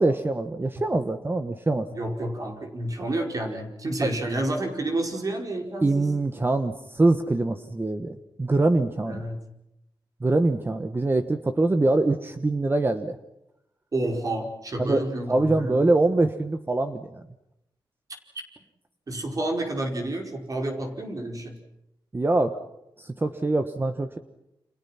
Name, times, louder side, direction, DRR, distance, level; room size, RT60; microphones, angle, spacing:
voice 1, 0.0-1.9 4.0-4.1 5.8-9.2 10.2-13.2 14.8-17.2 22.1-22.6 23.0-24.2, right 2 dB, 25° right, 8 dB, 1.3 m, -24 dB
voice 2, 1.9-6.1 9.1-9.4 13.9-15.9 19.1-21.6, right 1 dB, 40° right, 3 dB, 5.0 m, -30 dB
30.0 x 27.5 x 5.9 m, 0.83 s
wide cardioid pair, 120°, 9 cm